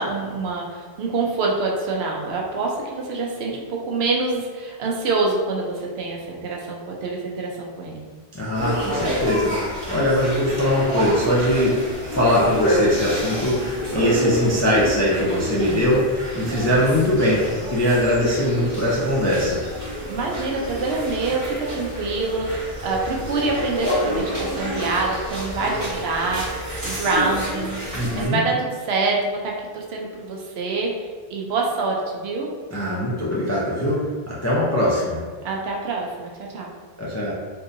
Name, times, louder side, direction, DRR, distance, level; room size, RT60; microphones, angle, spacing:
voice 1, 0.0-8.1 20.1-32.5 35.4-36.7, right 3 dB, 75° right, -1 dB, 0.9 m, -26 dB
voice 2, 8.3-11.7 12.1-19.6 27.9-28.5 32.7-35.2 37.0-37.3, left 1 dB, 30° left, -6 dB, 0.3 m, -21 dB
sound 1, 8.6-28.3, equal, 35° right, 1.2 m, -28 dB
3.8 x 2.7 x 2.5 m, 1.5 s
omnidirectional pair, 1.1 m